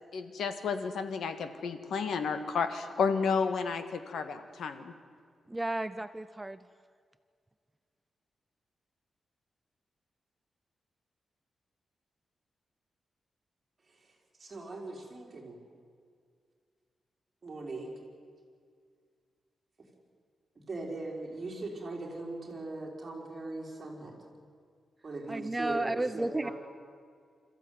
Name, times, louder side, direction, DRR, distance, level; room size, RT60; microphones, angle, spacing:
voice 1, 0.1-4.9, left 5 dB, 80° left, 9 dB, 1.7 m, -32 dB
voice 2, 5.5-6.7 25.3-26.5, right 2 dB, 10° right, 12 dB, 0.5 m, -33 dB
voice 3, 14.4-15.6 17.4-17.9 20.7-24.1 25.0-26.5, right 2 dB, 30° right, -1 dB, 4.5 m, -40 dB
27.0 x 14.5 x 9.5 m, 2.1 s
wide cardioid pair, 155°, 0 cm